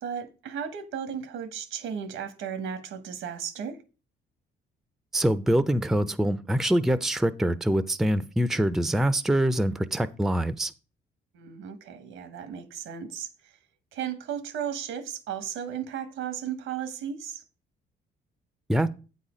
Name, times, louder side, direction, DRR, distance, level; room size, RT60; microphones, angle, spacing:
voice 1, 0.0-3.8 11.3-13.3 13.9-17.4, right 8 dB, 85° right, 1.0 m, -35 dB
voice 2, 5.1-10.7 18.7-18.9, right 1 dB, ahead, 0.4 m, -24 dB
8.2 x 4.1 x 4.9 m
cardioid pair, 90°, 20 cm